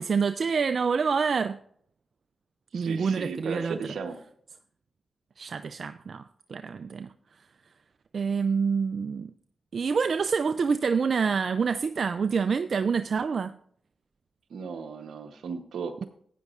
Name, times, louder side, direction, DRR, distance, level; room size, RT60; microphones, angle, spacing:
voice 1, 0.0-1.6 2.7-3.8 5.4-6.2 6.5-7.1 8.1-9.3 9.7-13.6, right 5 dB, 65° right, 0.3 m, -27 dB
voice 2, 2.7-4.2 14.5-16.0, right 5 dB, 85° right, 0.9 m, -36 dB
15.0 x 9.3 x 2.4 m
cardioid pair, 45°, 0 cm